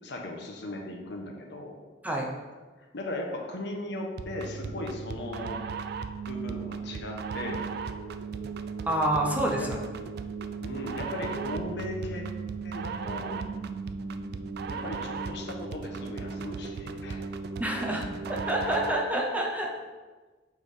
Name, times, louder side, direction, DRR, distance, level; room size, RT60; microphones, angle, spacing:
voice 1, 0.0-1.8 2.9-5.6 6.2-7.6 9.6-9.7 10.6-12.3 12.6-13.4 14.7-17.2, left 1 dB, 65° left, 1 dB, 1.0 m, -37 dB
sound 1, 4.2-19.1, right 5 dB, 55° right, 0.3 m, -36 dB
voice 2, 8.9-9.8 17.6-19.7, right 1 dB, 10° right, 0 dB, 0.7 m, -28 dB
6.6 x 3.5 x 4.9 m, 1.3 s
head